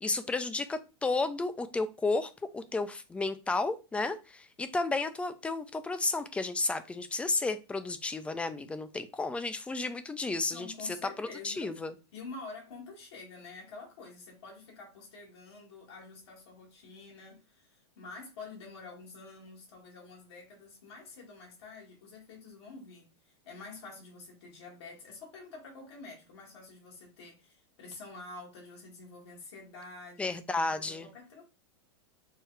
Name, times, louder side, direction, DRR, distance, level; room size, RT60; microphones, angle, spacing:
voice 1, 0.0-11.9 30.2-31.1, left 3 dB, 10° left, 0.3 m, -32 dB
voice 2, 10.5-11.7 12.1-30.4 30.7-31.4, left 3 dB, 75° left, 1.6 m, -48 dB
4.6 x 2.3 x 3.2 m
hypercardioid pair, 125°, 14 cm